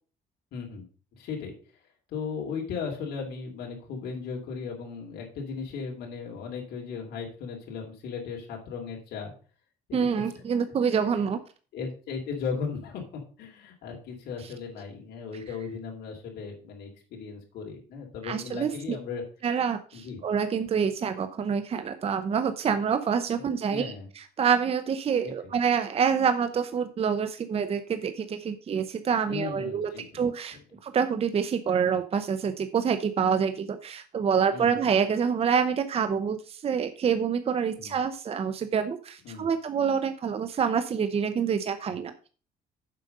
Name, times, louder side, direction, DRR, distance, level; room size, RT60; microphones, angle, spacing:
voice 1, 0.5-0.9 1.2-1.5 2.1-9.3 9.9-10.5 10.9-11.0 11.7-13.0 13.4-19.2 19.9-20.2 23.4-23.5 23.7-24.1 25.2-25.5 29.3-30.3 34.5-34.8 37.8-38.0 39.2-39.5, left 5 dB, 75° left, -1 dB, 2.8 m, -36 dB
voice 2, 9.9-11.4 18.2-19.0 19.4-30.6 30.8-42.3, right 7 dB, 35° right, 9 dB, 0.7 m, -27 dB
7.5 x 5.2 x 6.6 m, 0.39 s
cardioid pair, 110°, 17 cm